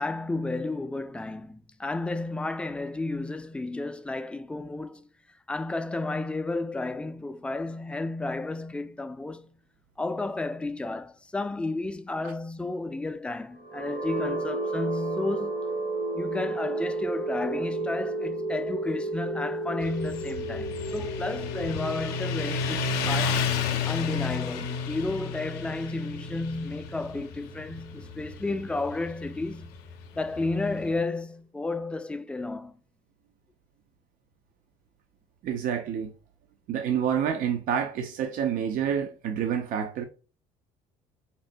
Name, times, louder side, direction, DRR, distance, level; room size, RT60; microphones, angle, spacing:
voice 1, 0.0-5.1 5.5-9.5 10.0-15.6 16.1-23.4 23.9-29.7 30.1-32.7, left 2 dB, 5° left, 0.3 m, -32 dB
sound 1, 13.6-27.5, right 2 dB, 70° right, 1.3 m, -33 dB
Motorcycle, 19.8-30.9, left 5 dB, 70° left, 0.5 m, -32 dB
voice 2, 35.4-36.1 36.7-40.1, right 8 dB, 55° right, 0.4 m, -28 dB
4.1 x 2.0 x 2.5 m
hypercardioid pair, 65°, 17 cm